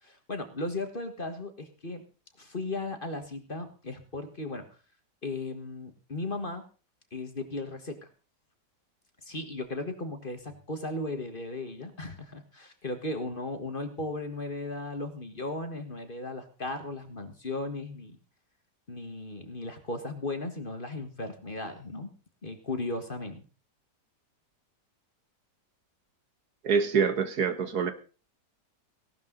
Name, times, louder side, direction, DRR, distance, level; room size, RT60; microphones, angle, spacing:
voice 1, 0.0-2.0 2.4-4.7 5.2-6.6 7.1-8.1 9.2-18.2 18.9-22.1 22.4-23.4, left 2 dB, 30° left, 7 dB, 1.7 m, -36 dB
voice 2, 26.6-27.9, right 6 dB, 65° right, 10 dB, 1.7 m, -25 dB
17.5 x 12.0 x 4.0 m, 0.35 s
omnidirectional pair, 1.9 m